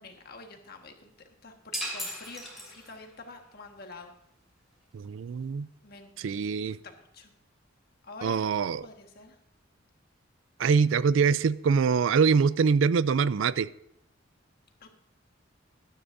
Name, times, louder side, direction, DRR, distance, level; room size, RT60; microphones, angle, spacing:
voice 1, 0.0-4.2 5.8-6.2 6.6-7.3 8.0-8.5 8.8-9.4 14.8-14.9, left 3 dB, 50° left, 3 dB, 1.5 m, -47 dB
sound 1, 1.7-3.2, equal, ahead, 2.9 m, -37 dB
voice 2, 4.9-5.7 6.2-6.8 8.2-8.8 10.6-13.7, right 5 dB, 70° right, 18 dB, 0.4 m, -24 dB
19.5 x 10.0 x 2.6 m, 0.79 s
head